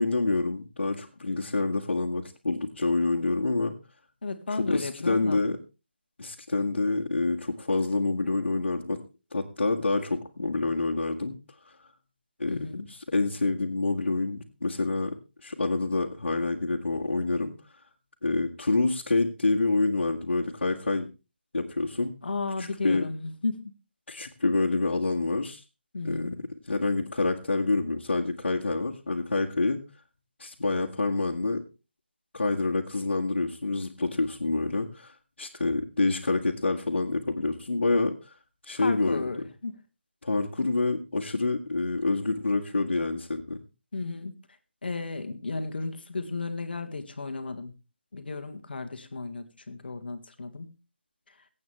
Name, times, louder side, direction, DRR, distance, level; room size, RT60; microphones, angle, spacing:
voice 1, 0.0-3.7 4.5-5.6 6.2-9.0 9.3-11.4 11.6-11.7 12.4-17.5 18.2-21.1 21.5-22.1 22.6-23.0 24.1-25.6 26.0-26.3 26.7-29.8 30.4-31.6 32.3-35.1 35.4-38.2 38.6-39.2 40.2-43.6, left 3 dB, 90° left, 1.9 m, -27 dB
voice 2, 4.2-5.4 12.5-12.9 22.2-23.7 25.9-26.5 38.8-39.8 43.9-44.4 44.8-47.7 48.1-50.7 51.3-51.4, left 3 dB, 60° left, 2.0 m, -34 dB
24.5 x 8.6 x 3.4 m
figure-of-eight pair, 175°, 6 cm